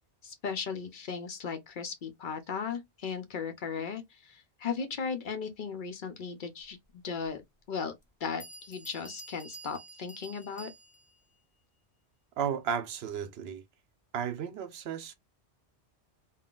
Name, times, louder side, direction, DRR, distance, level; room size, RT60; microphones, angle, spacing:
voice 1, 0.2-7.4 7.7-7.9 8.2-10.7, left 6 dB, 55° left, 0.7 m, -36 dB
Bell, 8.0-8.1 8.4-11.2, right 2 dB, 10° left, 0.4 m, -49 dB
voice 2, 12.4-13.6 14.1-15.1, right 8 dB, 75° right, 0.8 m, -34 dB
3.6 x 2.3 x 2.3 m
omnidirectional pair, 1.1 m